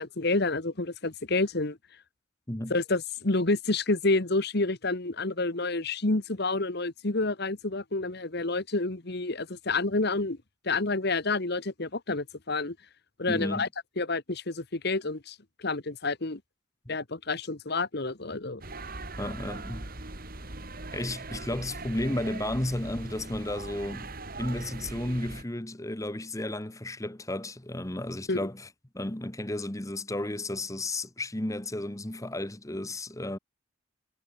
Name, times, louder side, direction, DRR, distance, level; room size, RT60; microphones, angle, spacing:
voice 1, 0.0-1.8 2.7-10.4 10.6-12.7 13.2-13.7 14.0-16.4 16.9-18.6 28.3-28.4, left 3 dB, 50° left, 1.5 m, -29 dB
voice 2, 13.3-13.7 16.8-16.9 19.2-19.9 20.9-24.1 24.4-28.7 28.9-33.4, left 1 dB, 15° left, 1.2 m, -33 dB
sound 1, 18.6-25.4, right 2 dB, 45° right, 2.9 m, -40 dB
head